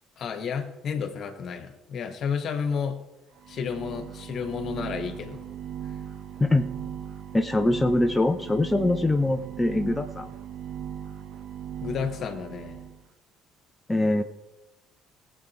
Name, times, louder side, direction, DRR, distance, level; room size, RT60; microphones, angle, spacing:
voice 1, 0.2-3.0 3.5-5.4 11.8-12.8, left 6 dB, 55° left, 7 dB, 1.6 m, -31 dB
sound 1, 3.4-13.0, right 9 dB, 60° right, 0.9 m, -38 dB
voice 2, 7.3-10.3 13.9-14.2, left 2 dB, 15° left, 6 dB, 0.8 m, -23 dB
19.5 x 8.4 x 3.2 m, 1.1 s
figure-of-eight pair, 50°, 0 cm